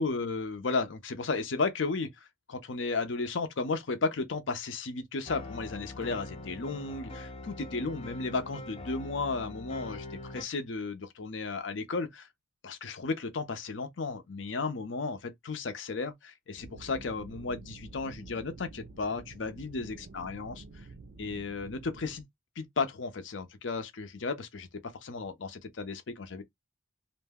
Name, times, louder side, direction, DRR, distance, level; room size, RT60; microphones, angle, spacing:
voice 1, 0.0-2.1 2.5-12.3 12.6-20.6 21.2-22.2 22.6-26.4, left 4 dB, 80° left, 0.6 m, -34 dB
sound 1, 5.3-10.4, left 2 dB, 30° left, 0.6 m, -43 dB
sound 2, 16.6-22.2, right 3 dB, 65° right, 0.4 m, -49 dB
2.6 x 2.0 x 3.5 m
head